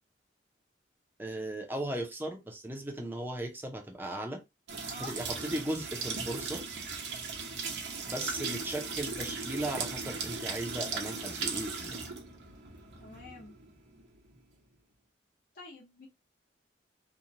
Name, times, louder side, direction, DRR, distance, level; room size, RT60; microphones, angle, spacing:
voice 1, 1.2-4.4 5.0-6.6 8.0-12.0, right 1 dB, 10° right, 0.5 m, -37 dB
sound 1, 4.7-14.4, right 4 dB, 80° right, 0.8 m, -38 dB
voice 2, 7.9-8.3 13.0-13.5 15.5-16.1, left 2 dB, 55° left, 0.9 m, -47 dB
2.9 x 2.2 x 2.5 m
head